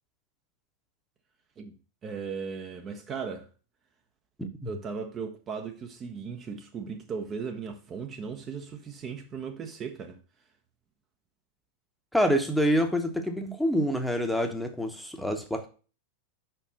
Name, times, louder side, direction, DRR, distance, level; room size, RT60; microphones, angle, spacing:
voice 1, 2.0-3.5 4.6-10.2, right 6 dB, 25° right, 0.8 m, -37 dB
voice 2, 4.4-4.7 12.1-15.7, equal, ahead, 1.0 m, -27 dB
5.3 x 4.5 x 6.2 m
figure-of-eight pair, 90°, 0 cm